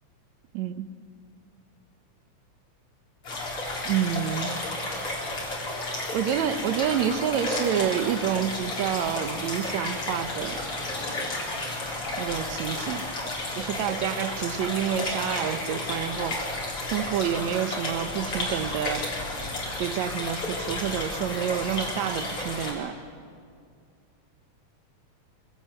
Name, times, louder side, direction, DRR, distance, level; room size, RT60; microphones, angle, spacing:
voice 1, 0.5-0.9 3.8-4.6 6.1-10.6 12.2-13.0 13.6-16.4 16.9-19.0 19.8-23.0, right 9 dB, 75° right, 11 dB, 2.1 m, -28 dB
sound 1, 3.2-22.7, left 2 dB, 45° left, 4.9 m, -32 dB
25.0 x 17.0 x 8.1 m, 2.3 s
omnidirectional pair, 3.4 m